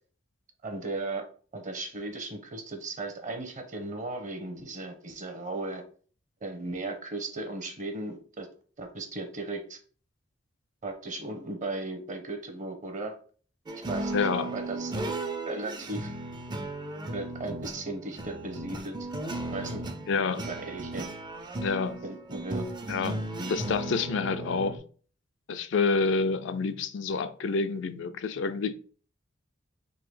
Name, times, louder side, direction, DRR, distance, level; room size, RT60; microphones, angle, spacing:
voice 1, 0.6-1.3 1.5-5.8 6.4-8.5 8.8-9.8 10.8-13.2 13.9-15.0 15.5-16.1 17.1-19.1 19.5-19.9 20.1-21.1 22.0-22.6 23.4-23.5, right 2 dB, 40° right, 0.9 m, -36 dB
sound 1, 13.7-24.8, right 2 dB, 25° right, 0.5 m, -36 dB
voice 2, 14.1-14.5 20.1-20.4 21.6-22.0 22.9-24.8 25.5-28.8, left 4 dB, 65° left, 0.4 m, -28 dB
3.9 x 2.8 x 4.8 m
head